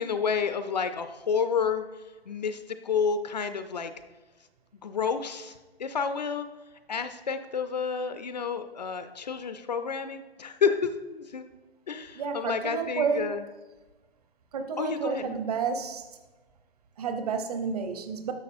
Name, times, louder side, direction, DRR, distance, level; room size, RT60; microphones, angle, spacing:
voice 1, 0.0-1.8 2.3-3.9 4.8-6.5 6.9-11.5 11.9-13.4 14.8-15.4, left 6 dB, 45° left, 10 dB, 0.4 m, -30 dB
voice 2, 12.2-13.3 14.5-16.0 17.0-18.3, right 5 dB, 40° right, 7 dB, 0.8 m, -30 dB
10.5 x 6.9 x 2.5 m, 1.2 s
figure-of-eight pair, 135°, 31 cm